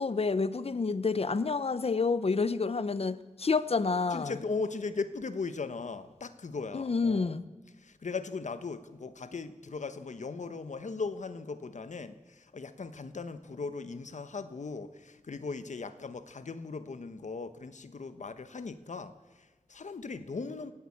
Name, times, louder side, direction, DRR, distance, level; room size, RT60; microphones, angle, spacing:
voice 1, 0.0-4.3 6.7-7.4, left 4 dB, 55° left, 0.8 m, -29 dB
voice 2, 4.1-7.4 7.7-20.7, left 4 dB, 75° left, 1.2 m, -38 dB
19.0 x 17.0 x 8.7 m
wide cardioid pair, 75°, 12 cm